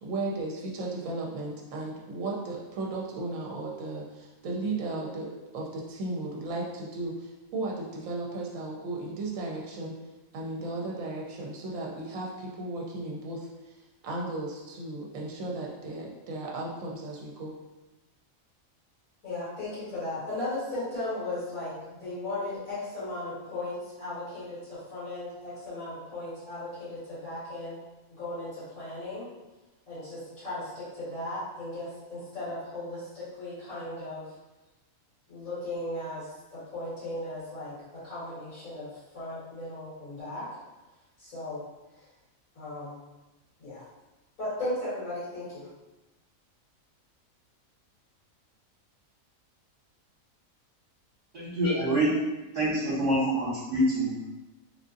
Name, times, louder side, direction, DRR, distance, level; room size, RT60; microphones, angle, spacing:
voice 1, 0.0-10.0 10.3-13.5 14.0-17.5, right 2 dB, 75° right, -2 dB, 1.0 m, -35 dB
voice 2, 19.2-27.8 28.1-29.3 29.9-34.3 35.3-40.5 41.2-41.7 41.9-42.1 42.5-43.0 43.6-43.8 44.4-45.7, left 2 dB, 90° left, -13 dB, 2.1 m, -36 dB
voice 3, 51.3-52.1 52.5-54.3, right 1 dB, 45° right, -11 dB, 1.2 m, -26 dB
3.7 x 2.5 x 2.5 m, 1.1 s
omnidirectional pair, 1.4 m